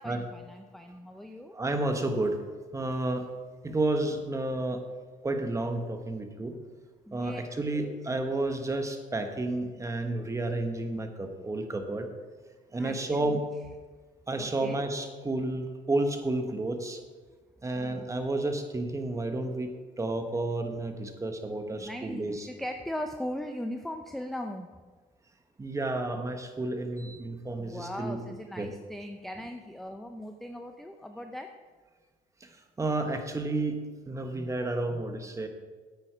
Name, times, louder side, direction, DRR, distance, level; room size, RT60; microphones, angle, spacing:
voice 1, 0.0-1.5 7.1-7.4 7.7-7.9 12.8-13.4 14.4-14.8 17.7-18.0 21.8-24.7 27.6-31.5, left 1 dB, ahead, 5 dB, 0.5 m, -39 dB
voice 2, 1.5-2.4 2.7-3.3 3.6-4.8 5.2-6.6 7.1-12.1 12.7-13.4 14.3-17.0 17.6-19.7 20.0-22.5 25.6-28.7 32.4-35.5, right 2 dB, 20° right, 6 dB, 1.2 m, -31 dB
9.2 x 8.7 x 4.6 m, 1.4 s
cardioid pair, 110°, 17 cm